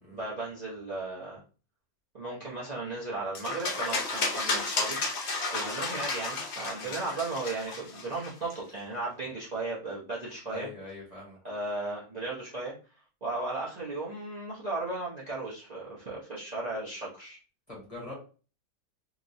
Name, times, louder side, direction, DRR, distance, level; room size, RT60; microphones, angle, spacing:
voice 1, 0.1-1.4 2.1-5.0 5.5-10.7 11.4-12.7 13.2-17.4, right 2 dB, 35° right, -7 dB, 0.8 m, -35 dB
sound 1, 3.4-8.5, left 3 dB, 55° left, 1.0 m, -32 dB
voice 2, 10.5-11.4 17.7-18.2, left 2 dB, 25° left, -4 dB, 1.2 m, -43 dB
2.9 x 2.9 x 2.6 m, 0.37 s
omnidirectional pair, 1.5 m